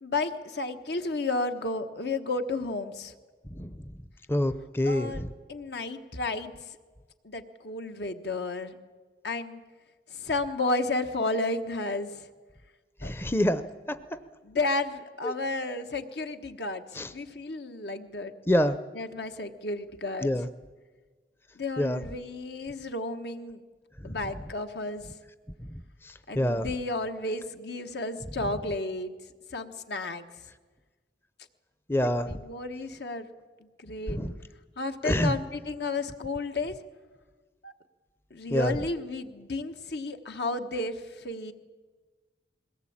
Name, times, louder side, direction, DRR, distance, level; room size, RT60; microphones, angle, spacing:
voice 1, 0.0-3.1 4.9-5.2 5.5-6.5 7.2-8.8 9.2-9.6 10.1-12.3 13.0-13.1 14.4-18.3 18.9-20.3 21.5-23.6 24.0-25.1 26.3-29.1 29.5-30.2 32.2-33.3 33.8-34.2 34.8-36.8 37.6-37.7 38.3-41.5, left 2 dB, 75° left, 7 dB, 1.4 m, -32 dB
voice 2, 4.3-5.3 13.0-13.6 13.9-14.0 15.2-15.3 16.9-17.1 18.5-18.8 20.2-20.5 21.8-22.0 24.0-24.2 25.7-26.7 31.9-32.4 34.1-34.3 35.0-35.3 38.5-38.7, left 1 dB, 15° left, 11 dB, 0.6 m, -27 dB
21.5 x 18.5 x 8.8 m, 1.4 s
head